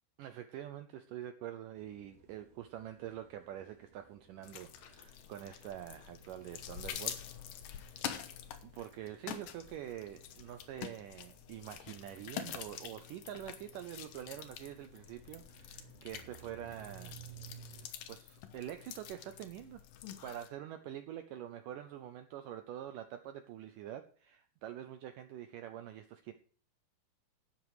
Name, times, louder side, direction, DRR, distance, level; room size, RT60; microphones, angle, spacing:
voice 1, 0.2-8.2 8.6-17.2 17.7-19.8 20.2-26.3, right 11 dB, 80° right, 8 dB, 1.9 m, -46 dB
sound 1, 1.7-17.9, right 7 dB, 45° right, 4.9 m, -59 dB
sound 2, 4.4-20.5, left 10 dB, 70° left, 2.4 m, -47 dB
12.5 x 9.2 x 4.9 m, 0.44 s
omnidirectional pair, 4.5 m